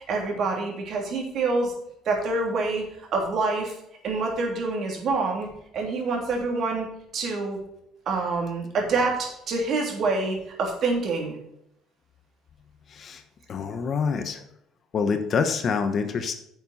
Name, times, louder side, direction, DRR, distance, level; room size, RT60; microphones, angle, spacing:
voice 1, 0.0-1.7 2.0-2.8 3.1-3.7 4.0-5.5 5.7-6.9 7.1-7.6 8.1-11.4, right 3 dB, 55° right, 1 dB, 3.0 m, -26 dB
voice 2, 13.5-14.4 14.9-16.3, left 5 dB, 45° left, 8 dB, 1.1 m, -26 dB
10.0 x 7.2 x 4.3 m, 0.79 s
cardioid pair, 105°, 0 cm